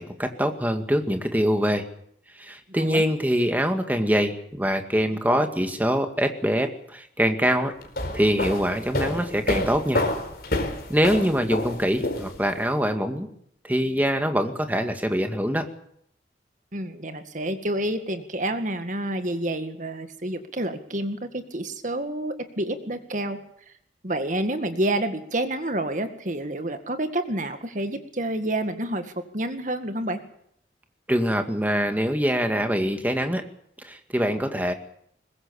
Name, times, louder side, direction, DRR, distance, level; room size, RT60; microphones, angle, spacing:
voice 1, 0.0-1.9 2.4-7.7 8.1-10.1 10.9-13.3 13.6-15.7 31.1-33.4 33.8-34.7, equal, 10° right, 6 dB, 2.0 m, -24 dB
sound 1, 7.8-12.6, left 1 dB, 55° left, 4.7 m, -28 dB
voice 2, 16.7-23.4 24.0-29.1 29.3-30.2, right 1 dB, 45° right, 8 dB, 2.0 m, -28 dB
22.5 x 20.5 x 7.1 m, 0.70 s
head